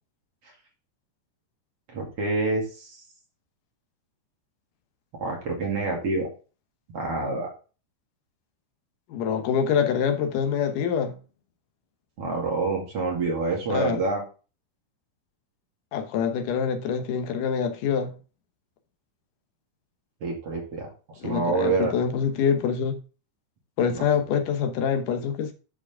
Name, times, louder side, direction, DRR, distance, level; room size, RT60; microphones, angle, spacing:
voice 1, 1.9-3.0 5.1-6.3 6.9-7.5 12.2-14.2 20.2-21.9 23.9-24.0, right 3 dB, 45° right, 3.1 m, -27 dB
voice 2, 9.1-11.1 13.7-14.0 15.9-18.1 21.2-23.0 23.8-25.5, left 7 dB, 80° left, 2.6 m, -25 dB
11.0 x 5.1 x 3.6 m
omnidirectional pair, 3.8 m